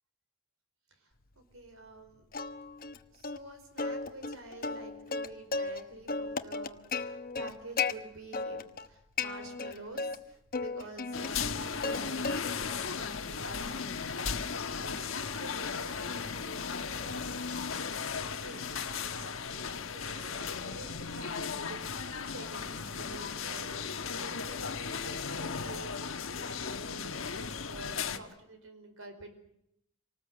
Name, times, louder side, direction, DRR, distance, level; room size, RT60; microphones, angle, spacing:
voice 1, 1.4-2.3 3.1-13.7 14.2-29.3, right 2 dB, 80° right, 7 dB, 4.8 m, -49 dB
Plucked string instrument, 2.3-3.0 3.2-3.4 3.8-5.8 6.1-7.9 8.3-8.9 9.2-10.2 10.5-12.0 12.2-12.7 13.2-17.4, left 4 dB, 45° left, 1.0 m, -36 dB
sound 1, 11.1-28.2, left 5 dB, 70° left, 1.3 m, -36 dB
26.0 x 19.0 x 7.9 m, 0.76 s
head